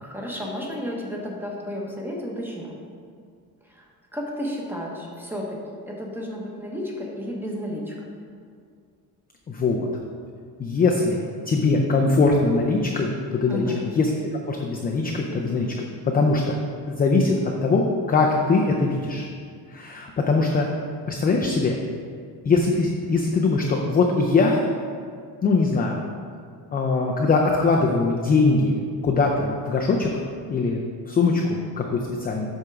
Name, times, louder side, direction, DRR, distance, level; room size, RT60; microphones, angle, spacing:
voice 1, 0.0-2.7 3.6-3.9 4.1-8.0 13.5-13.8, equal, 5° right, -2 dB, 0.8 m, -32 dB
voice 2, 9.5-9.9 10.6-13.7 14.0-14.1 14.5-15.7 16.0-16.6 16.9-19.2 19.7-20.7 21.1-21.8 22.4-24.6 25.4-26.0 26.7-30.2 30.5-32.5, left 3 dB, 25° left, 0 dB, 0.4 m, -22 dB
7.9 x 3.6 x 5.8 m, 2.2 s
cardioid pair, 165°, 39 cm